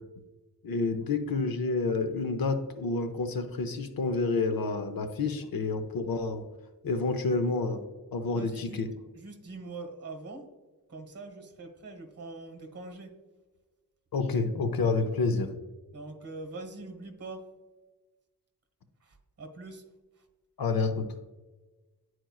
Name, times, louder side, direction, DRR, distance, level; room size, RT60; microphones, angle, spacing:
voice 1, 0.6-6.5 6.8-7.8 8.1-8.9 14.1-15.5 20.6-21.1, left 3 dB, 65° left, 8 dB, 0.7 m, -29 dB
voice 2, 8.3-8.8 9.1-10.5 10.9-13.2 15.9-17.5 19.0-19.8 20.2-20.3, right 3 dB, 40° right, 4 dB, 1.4 m, -43 dB
10.0 x 4.5 x 2.4 m, 1.2 s
wide cardioid pair, 170°, 39 cm